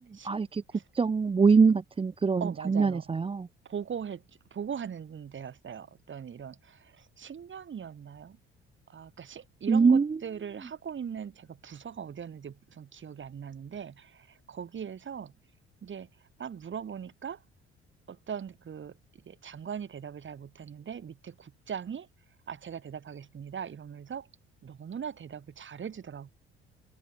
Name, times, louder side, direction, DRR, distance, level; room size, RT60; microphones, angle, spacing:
voice 1, 0.2-0.6 0.9-3.5 9.7-10.2, right 5 dB, 20° right, 0.7 m, -23 dB
voice 2, 2.4-3.1 3.6-8.4 8.9-15.3 15.8-16.1 16.4-17.4 18.1-22.1 22.5-24.3 24.6-26.3, right 7 dB, 40° right, 3.0 m, -40 dB
figure-of-eight pair, 50°, 31 cm